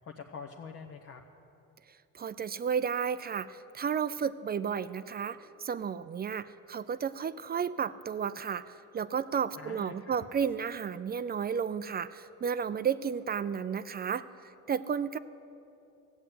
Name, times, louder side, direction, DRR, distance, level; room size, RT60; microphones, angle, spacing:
voice 1, 0.0-1.2 9.6-10.2, left 5 dB, 50° left, 1 dB, 0.9 m, -45 dB
voice 2, 2.1-14.2 14.7-15.2, right 7 dB, 30° right, 14 dB, 0.4 m, -32 dB
15.0 x 8.0 x 9.2 m, 2.8 s
cardioid pair, 100°, 32 cm